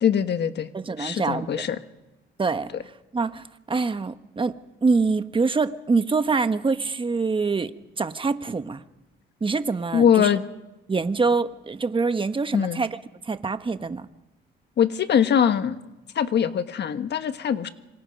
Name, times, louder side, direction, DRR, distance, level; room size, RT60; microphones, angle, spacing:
voice 1, 0.0-0.7 1.0-1.8 9.9-10.5 12.5-12.8 14.8-15.8 16.1-17.7, left 8 dB, 60° left, 10 dB, 1.4 m, -22 dB
voice 2, 0.7-1.7 2.4-2.7 3.1-7.7 8.0-8.8 9.4-10.3 10.9-13.0 13.2-14.1, right 4 dB, 25° right, 10 dB, 1.2 m, -25 dB
26.5 x 25.0 x 5.4 m, 1.0 s
cardioid pair, 90°, 20 cm